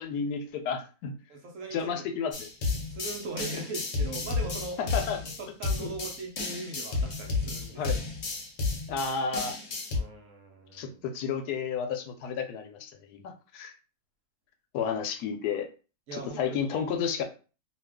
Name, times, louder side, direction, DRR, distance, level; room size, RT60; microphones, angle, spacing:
voice 1, 0.0-1.1 1.7-2.5 4.8-5.2 5.8-5.9 7.8-8.0 8.9-9.6 10.7-13.7 14.7-15.7 16.1-17.2, left 6 dB, 80° left, 6 dB, 1.1 m, -32 dB
voice 2, 1.3-2.0 2.9-4.8 5.2-8.0 9.9-11.0 16.1-16.9, right 3 dB, 60° right, 1 dB, 1.0 m, -40 dB
sound 1, 2.3-10.0, left 3 dB, 50° left, 0.9 m, -32 dB
2.7 x 2.4 x 3.4 m, 0.35 s
omnidirectional pair, 1.6 m